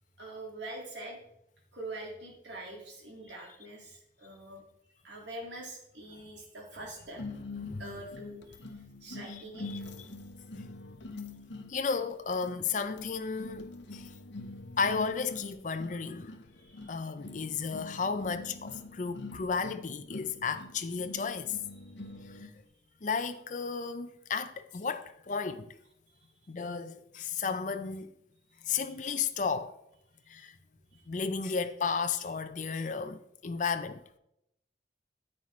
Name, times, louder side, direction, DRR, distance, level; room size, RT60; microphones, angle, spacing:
voice 1, 0.2-1.2 1.7-4.6 5.0-7.2 7.8-8.6 9.0-9.9 16.5-17.1 22.0-22.2 26.1-26.2 28.7-28.9 30.4-30.5, right 2 dB, 70° right, 2.1 m, -44 dB
sound 1, 7.2-22.6, left 2 dB, 75° left, 0.9 m, -45 dB
voice 2, 9.3-10.1 11.7-14.1 14.8-16.4 16.9-21.6 22.2-22.5 23.0-25.7 26.5-28.1 28.6-29.8 30.3-30.6 31.1-34.0, left 5 dB, 40° left, 0.5 m, -33 dB
9.8 x 8.7 x 3.2 m
head